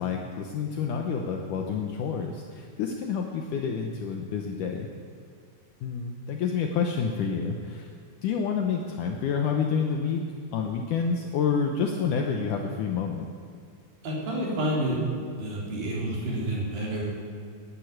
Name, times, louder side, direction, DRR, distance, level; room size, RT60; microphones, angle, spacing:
voice 1, 0.0-4.9 5.8-7.9 8.2-10.2 10.5-13.3, left 6 dB, 70° left, 2 dB, 2.2 m, -28 dB
voice 2, 14.0-15.0 15.4-17.0, right 1 dB, 75° right, -5 dB, 5.7 m, -29 dB
13.0 x 11.0 x 8.7 m, 2.3 s
omnidirectional pair, 4.2 m